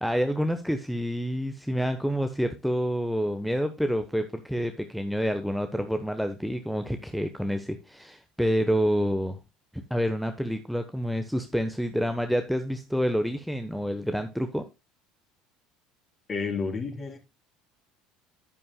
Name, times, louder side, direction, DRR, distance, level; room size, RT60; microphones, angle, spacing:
voice 1, 0.0-9.4 9.7-14.7, equal, ahead, 1.0 m, -28 dB
voice 2, 16.3-17.2, left 4 dB, 35° left, 3.7 m, -30 dB
10.0 x 9.8 x 2.2 m
hypercardioid pair, 70°, 0 cm